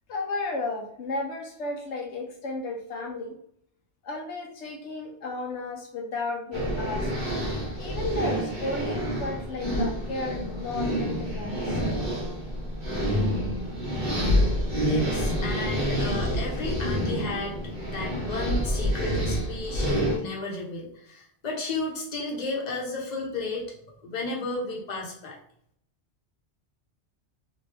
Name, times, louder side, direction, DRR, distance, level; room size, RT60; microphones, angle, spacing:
voice 1, 0.1-3.3 4.0-7.1 7.8-11.7, left 2 dB, 90° left, 2 dB, 1.0 m, -33 dB
sound 1, 6.5-20.2, equal, 55° right, 1.3 m, -28 dB
voice 2, 14.8-17.6 17.8-23.6 24.0-25.4, left 2 dB, 40° left, -2 dB, 0.9 m, -33 dB
3.0 x 2.6 x 3.3 m, 0.66 s
omnidirectional pair, 1.1 m